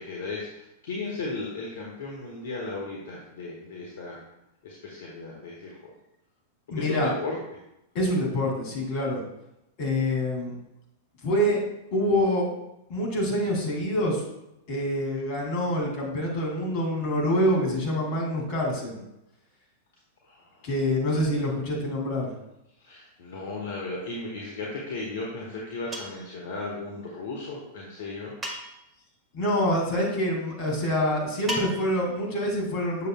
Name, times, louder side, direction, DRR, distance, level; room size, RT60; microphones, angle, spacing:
voice 1, 0.0-4.2 4.6-5.8 6.7-7.4 20.2-20.7 22.8-28.3, left 3 dB, 65° left, -2 dB, 1.3 m, -35 dB
voice 2, 6.7-7.1 7.9-9.2 9.8-10.5 11.2-11.6 11.9-12.5 12.9-14.2 14.7-19.0 20.6-22.3 29.3-33.1, equal, 50° left, -1 dB, 2.5 m, -26 dB
sound 1, 25.9-26.3 28.4-29.0 31.5-32.1, equal, 15° right, 1.7 m, -35 dB
8.2 x 6.6 x 2.3 m, 0.87 s
figure-of-eight pair, 95°, 0 cm